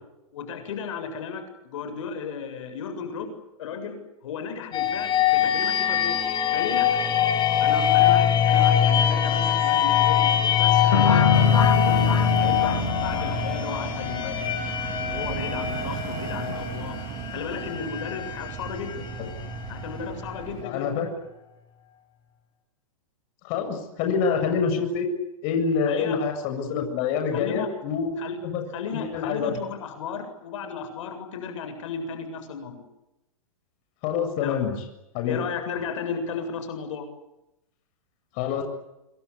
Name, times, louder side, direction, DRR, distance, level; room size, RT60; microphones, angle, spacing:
voice 1, 0.3-3.3 3.6-4.0 4.2-6.2 6.5-7.0 7.6-11.6 11.8-14.5 15.0-17.0 17.3-19.1 19.7-21.1 25.9-26.2 27.3-27.7 28.2-28.4 28.7-32.8 34.4-34.6 35.3-37.1, left 6 dB, 65° left, 7 dB, 7.7 m, -34 dB
sound 1, 4.7-20.4, left 9 dB, 25° left, 6.3 m, -23 dB
sound 2, 10.9-13.8, left 7 dB, 85° left, 3.1 m, -24 dB
sound 3, 11.3-20.6, right 12 dB, 45° right, 2.3 m, -35 dB
voice 2, 20.6-21.1 23.4-25.1 25.4-28.1 28.4-28.6 28.9-29.6 34.0-34.8 35.1-35.4 38.4-38.6, left 6 dB, 45° left, 5 dB, 7.3 m, -26 dB
28.0 x 25.0 x 8.4 m, 0.92 s
hypercardioid pair, 125°, 18 cm